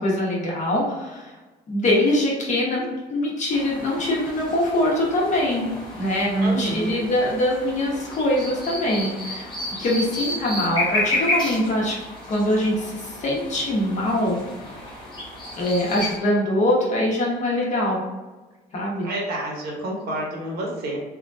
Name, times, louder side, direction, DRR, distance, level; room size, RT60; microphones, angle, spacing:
voice 1, 0.0-1.3 1.7-5.7 6.0-9.5 9.8-11.9 12.3-14.4 15.6-18.0 18.7-19.1, left 1 dB, 45° left, -3 dB, 1.2 m, -23 dB
sound 1, 3.5-16.2, left 1 dB, 25° left, 1.0 m, -32 dB
voice 2, 6.4-6.9 19.0-21.0, right 1 dB, 70° right, -1 dB, 1.0 m, -29 dB
3.5 x 2.4 x 2.6 m, 1.2 s
cardioid pair, 110°, 17 cm